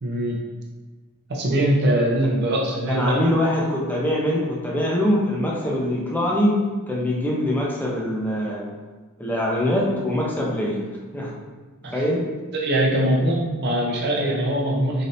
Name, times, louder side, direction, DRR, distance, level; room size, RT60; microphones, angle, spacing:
voice 1, 0.0-0.4 1.3-3.2 11.8-12.0 12.5-15.1, right 1 dB, 50° right, -2 dB, 0.6 m, -22 dB
voice 2, 2.9-6.6 6.9-8.7 9.2-10.8 11.1-11.3 11.9-12.2, left 1 dB, 10° left, -4 dB, 0.5 m, -23 dB
3.3 x 2.7 x 2.6 m, 1.3 s
head